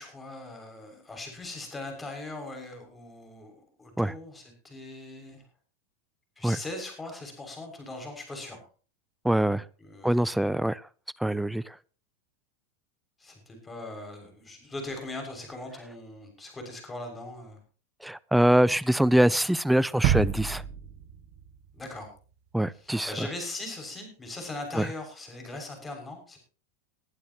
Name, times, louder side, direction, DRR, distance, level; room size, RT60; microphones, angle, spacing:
voice 1, 0.0-5.4 6.4-8.6 9.8-10.2 13.2-17.6 21.7-22.1 22.7-26.4, left 2 dB, 15° left, 6.5 m, -40 dB
voice 2, 9.2-9.6 10.0-10.8 11.2-11.7 18.0-20.6 22.5-23.1 24.8-24.9, right 1 dB, 5° right, 0.6 m, -24 dB
sound 1, 20.0-21.9 22.2-22.3, right 9 dB, 50° right, 1.5 m, -28 dB
21.0 x 11.5 x 3.0 m
supercardioid pair, 120°, 0 cm